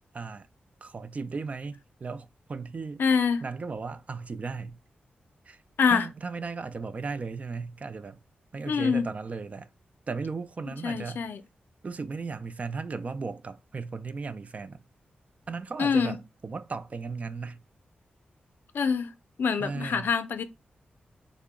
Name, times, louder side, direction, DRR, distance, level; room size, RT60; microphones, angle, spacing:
voice 1, 0.1-0.5 0.8-3.0 3.4-4.8 5.5-5.6 5.9-8.2 8.5-9.7 10.1-11.3 11.8-14.8 15.5-17.6 19.6-20.1, right 4 dB, 45° right, 0.3 m, -36 dB
voice 2, 3.0-3.4 5.8-6.1 8.7-9.1 10.8-11.4 15.8-16.2 18.7-19.1 19.4-20.4, left 6 dB, 80° left, 0.4 m, -25 dB
3.7 x 2.0 x 3.5 m
cardioid pair, 80°, 3 cm